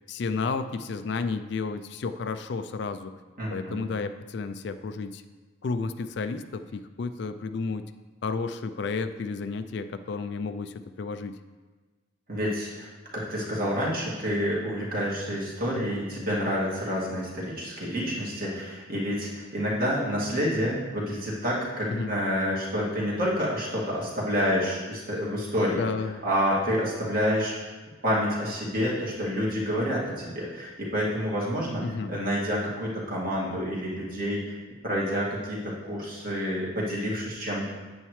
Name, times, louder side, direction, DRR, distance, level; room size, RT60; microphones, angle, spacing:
voice 1, 0.1-3.2 3.5-5.2 5.6-7.8 8.2-11.4 15.7-15.9 21.9-22.1 25.7-26.2 31.8-32.1, left 4 dB, 55° left, 10 dB, 0.3 m, -32 dB
voice 2, 3.4-3.8 12.3-25.8 26.2-27.5 28.0-31.8 32.1-34.5 34.8-37.7, equal, 45° right, -5 dB, 2.1 m, -28 dB
8.9 x 8.0 x 3.2 m, 1.3 s
head